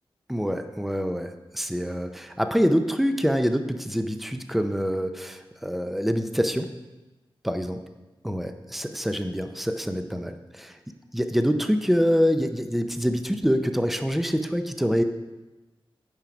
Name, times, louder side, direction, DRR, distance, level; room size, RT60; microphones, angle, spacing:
voice 1, 0.3-6.7 7.4-7.8 8.2-10.8 11.1-15.0, equal, ahead, 7 dB, 0.6 m, -25 dB
9.1 x 5.7 x 5.0 m, 1.1 s
wide cardioid pair, 105°, 10 cm